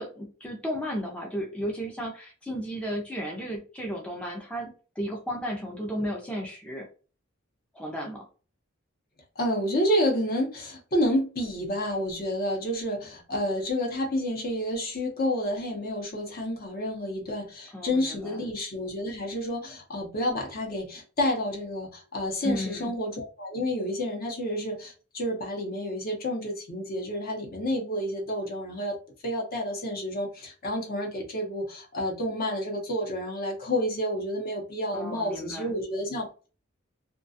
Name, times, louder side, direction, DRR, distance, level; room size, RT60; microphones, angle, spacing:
voice 1, 0.0-6.9 7.7-8.3 17.7-18.4 22.4-22.9 34.9-35.7, equal, 5° left, 0.4 m, -34 dB
voice 2, 9.4-28.9 29.2-36.5, equal, 45° left, 0.7 m, -29 dB
2.3 x 2.2 x 2.6 m
head